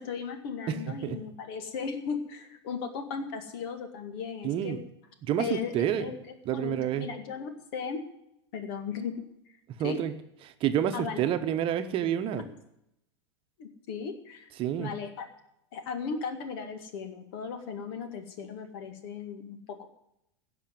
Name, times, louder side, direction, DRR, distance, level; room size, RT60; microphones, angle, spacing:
voice 1, 0.0-4.8 5.4-6.2 6.5-8.0 8.5-9.1 9.8-10.0 10.9-11.2 13.6-14.5 14.8-15.3 15.7-19.9, left 6 dB, 55° left, 7 dB, 2.0 m, -36 dB
voice 2, 4.4-4.8 5.2-6.0 6.5-7.1 9.8-10.1 10.6-12.4 14.6-14.9, right 10 dB, 40° right, 8 dB, 1.0 m, -28 dB
16.0 x 6.0 x 9.2 m, 0.80 s
figure-of-eight pair, 90°, 15 cm